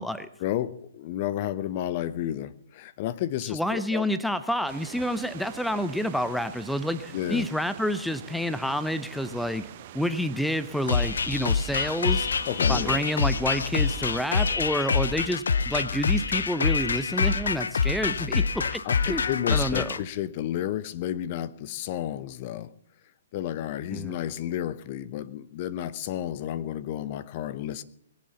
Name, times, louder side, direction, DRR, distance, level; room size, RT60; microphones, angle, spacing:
voice 1, 0.4-4.0 7.1-7.5 12.5-13.0 18.8-22.7 23.3-27.8, left 11 dB, 40° left, 16 dB, 0.8 m, -31 dB
voice 2, 3.5-9.6 9.9-12.3 12.7-18.8 19.1-19.2 19.5-20.0 23.9-24.1, equal, ahead, 13 dB, 0.6 m, -29 dB
sound 1, 4.7-14.6, right 12 dB, 45° right, 0.9 m, -45 dB
sound 2, 10.9-20.0, left 5 dB, 70° left, 0.7 m, -26 dB
21.5 x 7.6 x 7.0 m, 0.70 s
figure-of-eight pair, 125°, 0 cm